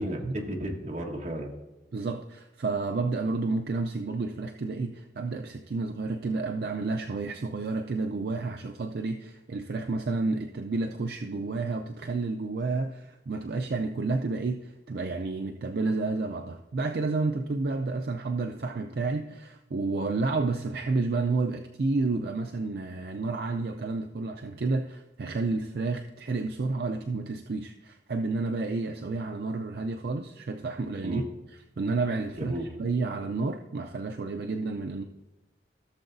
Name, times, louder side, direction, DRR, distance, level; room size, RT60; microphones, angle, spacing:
voice 1, 0.0-1.5 31.0-31.2 32.4-32.7, right 1 dB, 40° right, 0 dB, 1.4 m, -33 dB
voice 2, 1.9-31.2 31.8-32.5 32.8-35.0, right 3 dB, 60° right, 5 dB, 0.4 m, -30 dB
15.5 x 6.8 x 2.6 m, 1.1 s
head